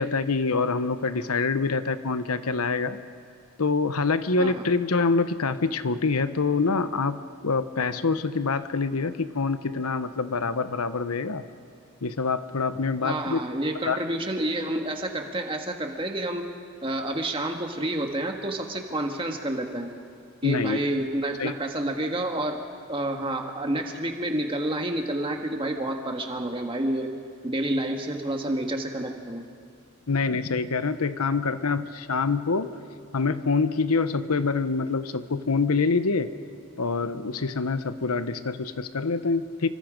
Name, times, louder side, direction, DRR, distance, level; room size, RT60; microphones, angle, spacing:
voice 1, 0.0-3.0 3.6-11.4 12.0-13.4 13.9-14.0 20.4-20.8 21.4-21.5 30.1-32.7 33.1-36.3 36.8-39.7, left 4 dB, 85° left, 12 dB, 0.9 m, -25 dB
voice 2, 13.0-16.5 16.8-19.9 20.4-22.6 22.9-27.1 27.4-29.4, right 1 dB, 25° right, 3 dB, 1.8 m, -29 dB
28.0 x 25.0 x 5.2 m, 2.3 s
head